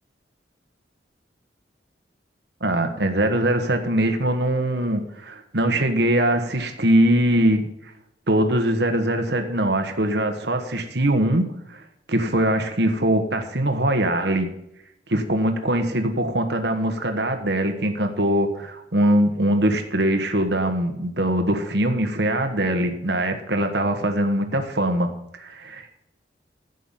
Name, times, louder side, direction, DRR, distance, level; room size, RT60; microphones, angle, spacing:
voice 1, 2.6-7.6 8.3-11.4 12.1-14.5 15.1-25.1 25.4-25.9, right 1 dB, 65° right, 6 dB, 1.4 m, -22 dB
11.5 x 8.3 x 5.4 m, 0.82 s
head